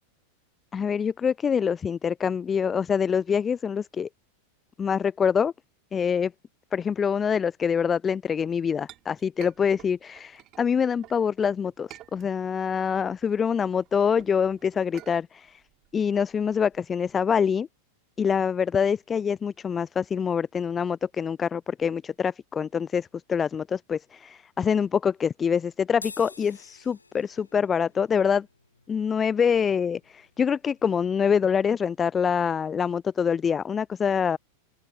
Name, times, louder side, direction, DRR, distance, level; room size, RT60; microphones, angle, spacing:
voice 1, 0.7-4.1 4.8-5.5 5.9-6.3 6.7-15.6 15.9-17.7 18.2-28.5 28.9-34.4, left 7 dB, 20° left, 0.3 m, -25 dB
Chink clink, 8.4-11.2 11.6-12.7 13.0-17.1, right 15 dB, 35° right, 5.0 m, -50 dB
sound 1, 25.9-32.5, left 3 dB, 80° left, 3.0 m, -50 dB
open air
figure-of-eight pair, 90°, 0 cm